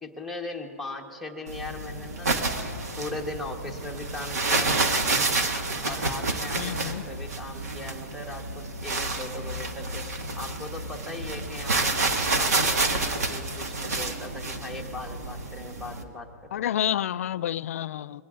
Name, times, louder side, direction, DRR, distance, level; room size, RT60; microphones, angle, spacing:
voice 1, 0.0-2.3 3.0-4.9 5.8-10.0 10.4-12.0 12.3-16.8, left 2 dB, ahead, -1 dB, 1.1 m, -39 dB
sound 1, 1.5-16.0, right 3 dB, 80° right, 1.7 m, -29 dB
voice 2, 6.6-7.0 16.5-18.2, left 11 dB, 60° left, 16 dB, 0.3 m, -29 dB
23.0 x 16.5 x 2.5 m, 2.6 s
hypercardioid pair, 150°, 8 cm